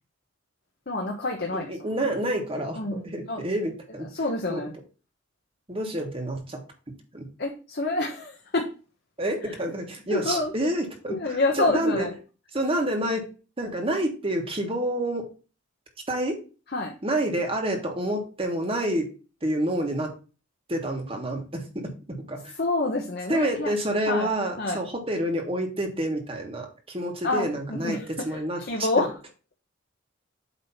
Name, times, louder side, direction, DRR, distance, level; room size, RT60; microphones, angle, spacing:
voice 1, 0.9-1.7 2.7-3.0 3.3-3.4 4.1-4.7 7.4-8.7 10.1-10.5 11.1-12.1 16.7-16.9 22.6-23.7 24.1-24.3 24.6-24.8 27.2-28.0 28.3-29.1, left 2 dB, 50° left, 1 dB, 1.1 m, -27 dB
voice 2, 1.5-4.1 4.5-4.6 5.7-6.6 7.1-7.3 9.2-12.1 12.5-13.3 13.6-15.3 16.1-16.4 17.0-19.1 19.4-20.1 20.7-22.5 23.3-29.1, right 1 dB, 25° right, 3 dB, 1.5 m, -28 dB
8.3 x 3.1 x 5.6 m, 0.34 s
head